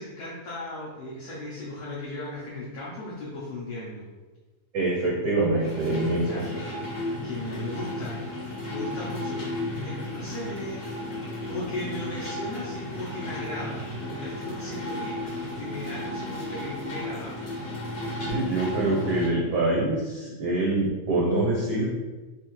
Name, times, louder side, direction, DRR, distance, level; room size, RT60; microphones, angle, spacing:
voice 1, 0.0-4.1 6.2-6.8 7.2-8.1 8.7-9.5 9.7-11.1 11.5-17.5, left 1 dB, 75° left, -7 dB, 1.6 m, -37 dB
voice 2, 4.7-6.5 18.2-21.9, right 2 dB, 75° right, -6 dB, 1.4 m, -25 dB
sound 1, 5.6-19.3, left 1 dB, 60° left, 1.0 m, -34 dB
5.5 x 3.0 x 3.0 m, 1.2 s
omnidirectional pair, 3.9 m